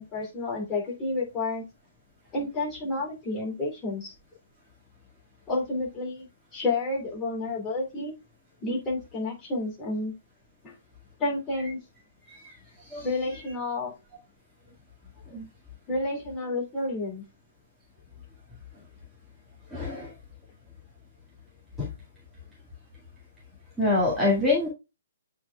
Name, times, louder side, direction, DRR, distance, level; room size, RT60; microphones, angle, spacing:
voice 1, 0.0-1.6 2.3-4.1 5.5-8.1 8.6-10.1 10.6-10.7 11.2-11.8 13.0-13.9 15.9-17.2, left 2 dB, 20° left, -3 dB, 3.0 m, -30 dB
voice 2, 19.7-20.1 21.8-21.9 23.8-24.7, left 2 dB, 5° right, -6 dB, 2.0 m, -25 dB
8.5 x 4.8 x 2.3 m, 0.26 s
figure-of-eight pair, 125°, 0 cm